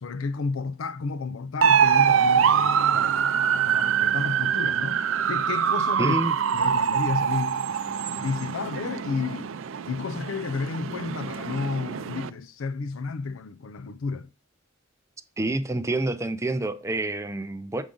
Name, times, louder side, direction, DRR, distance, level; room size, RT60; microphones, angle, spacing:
voice 1, 0.0-3.3 3.6-6.2 6.5-9.5 9.9-14.3, left 4 dB, 90° left, 0.5 m, -32 dB
sound 1, 1.6-12.3, right 7 dB, 75° right, 0.5 m, -24 dB
voice 2, 6.0-6.3 15.4-17.8, right 2 dB, 15° right, 0.5 m, -28 dB
7.2 x 5.0 x 3.8 m
head